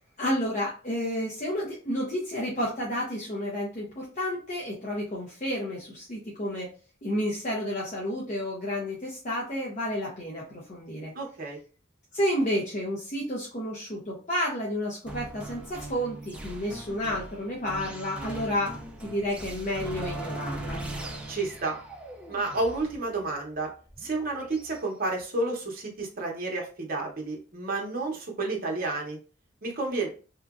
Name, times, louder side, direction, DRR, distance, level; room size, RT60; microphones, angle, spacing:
voice 1, 0.2-6.7 7.0-11.1 12.1-18.8 19.0-20.8, equal, 40° left, -4 dB, 0.6 m, -31 dB
voice 2, 11.1-11.6 21.3-21.8 22.3-23.7 24.0-29.2 29.6-30.1, right 2 dB, 45° right, -1 dB, 0.8 m, -30 dB
sound 1, 15.1-24.8, right 1 dB, 5° right, 0.4 m, -40 dB
2.8 x 2.4 x 2.4 m, 0.37 s
head